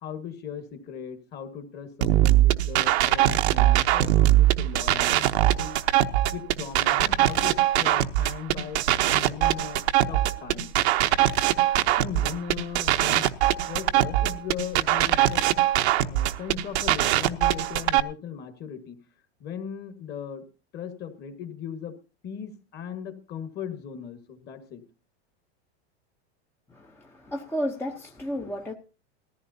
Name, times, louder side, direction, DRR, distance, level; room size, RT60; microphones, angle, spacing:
voice 1, 0.0-5.8 6.3-10.7 12.0-13.3 13.7-15.5 16.0-19.0 19.4-20.4 20.7-22.0 22.2-24.8, left 7 dB, 30° left, 8 dB, 1.8 m, -38 dB
sound 1, 2.0-18.0, right 13 dB, 70° right, 0.9 m, -22 dB
voice 2, 26.7-28.7, equal, 5° left, 1 dB, 0.8 m, -32 dB
19.5 x 14.5 x 2.7 m, 0.31 s
supercardioid pair, 145°, 34 cm